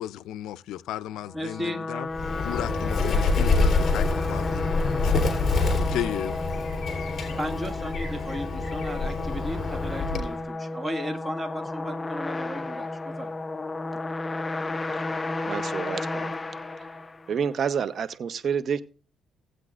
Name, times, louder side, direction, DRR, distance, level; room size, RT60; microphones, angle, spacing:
voice 1, 0.0-2.1 2.4-5.1 5.9-6.4, left 12 dB, 90° left, 0.4 m, -34 dB
sound 1, 1.2-17.5, left 2 dB, 20° left, 0.5 m, -33 dB
voice 2, 1.3-1.8 6.1-6.2 7.4-13.3, equal, 15° right, 1.8 m, -35 dB
Bird, 2.1-10.4, left 3 dB, 55° left, 3.4 m, -26 dB
voice 3, 15.5-16.3 17.3-18.8, right 7 dB, 55° right, 0.8 m, -28 dB
18.0 x 8.2 x 2.5 m
cardioid pair, 90°, 0 cm